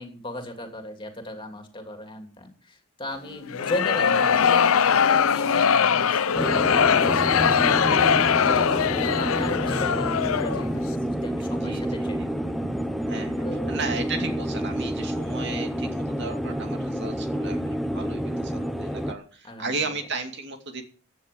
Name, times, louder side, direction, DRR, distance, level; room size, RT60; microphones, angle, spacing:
voice 1, 0.0-7.9 8.4-12.4 13.4-13.8 15.3-15.4 19.4-19.7, left 1 dB, 25° left, 4 dB, 2.9 m, -36 dB
sound 1, 3.5-10.7, left 7 dB, 80° left, 0.6 m, -21 dB
sound 2, 6.3-19.1, equal, ahead, 0.7 m, -29 dB
voice 2, 11.5-11.8 13.1-13.3 13.7-20.8, right 3 dB, 55° right, 5 dB, 2.5 m, -34 dB
16.0 x 9.7 x 5.4 m, 0.39 s
head